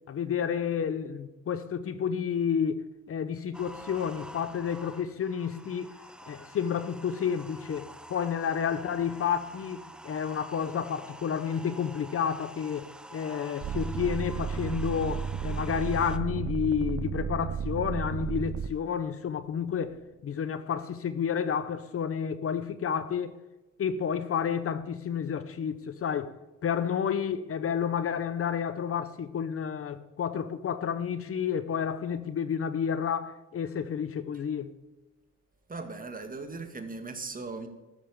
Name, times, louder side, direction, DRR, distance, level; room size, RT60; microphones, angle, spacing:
voice 1, 0.1-2.8 3.1-5.9 6.3-12.8 13.1-23.4 23.8-26.3 26.6-34.7, left 7 dB, 50° left, 0.8 m, -30 dB
sound 1, 3.5-16.2, right 1 dB, 5° right, 0.7 m, -47 dB
sound 2, 13.6-18.7 19.4-20.1, right 7 dB, 50° right, 0.6 m, -33 dB
voice 2, 35.7-37.7, right 3 dB, 30° right, 1.9 m, -38 dB
12.5 x 7.4 x 7.0 m
cardioid pair, 90°, 30 cm